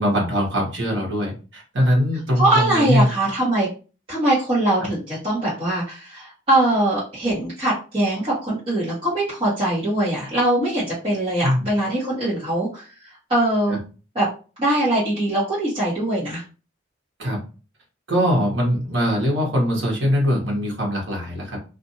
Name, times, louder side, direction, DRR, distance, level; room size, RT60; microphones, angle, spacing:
voice 1, 0.0-3.1 4.8-4.9 11.4-11.7 13.7-13.8 17.2-17.4 18.1-21.6, equal, 75° right, -2 dB, 1.2 m, -22 dB
voice 2, 2.4-3.7 4.1-12.8 13.3-13.8 14.1-14.3 14.6-16.4, right 1 dB, 30° right, -11 dB, 1.2 m, -22 dB
2.6 x 2.5 x 2.7 m, 0.34 s
head